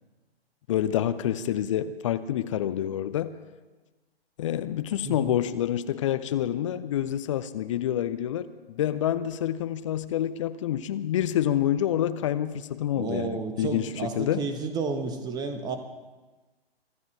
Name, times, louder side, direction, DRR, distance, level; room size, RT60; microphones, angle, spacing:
voice 1, 0.7-3.3 4.4-13.9 14.2-14.4, left 11 dB, 30° left, 13 dB, 0.6 m, -27 dB
voice 2, 13.0-15.8, right 4 dB, 15° right, 7 dB, 1.3 m, -32 dB
24.5 x 12.5 x 4.5 m, 1.2 s
figure-of-eight pair, 125°, 31 cm